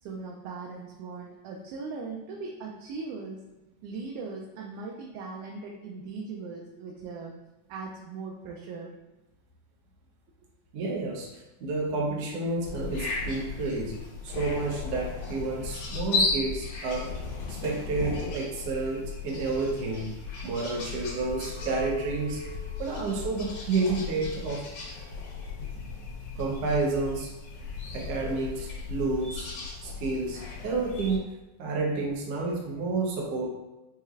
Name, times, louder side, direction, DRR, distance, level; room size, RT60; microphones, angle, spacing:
voice 1, 0.0-3.4 3.8-7.4 7.7-8.9, right 4 dB, 85° right, -1 dB, 2.0 m, -39 dB
voice 2, 10.7-14.0 14.2-17.2 17.5-20.1 20.4-22.4 22.8-24.7 26.4-27.3 27.9-29.5 29.8-31.3 31.6-33.5, right 3 dB, 65° right, -2 dB, 1.6 m, -30 dB
sound 1, 12.6-31.2, left 4 dB, 65° left, 1.8 m, -35 dB
Chink clink, 21.6-25.9 26.3-26.9, left 1 dB, 80° left, 2.2 m, -47 dB
5.4 x 3.1 x 2.4 m, 1.1 s
omnidirectional pair, 3.5 m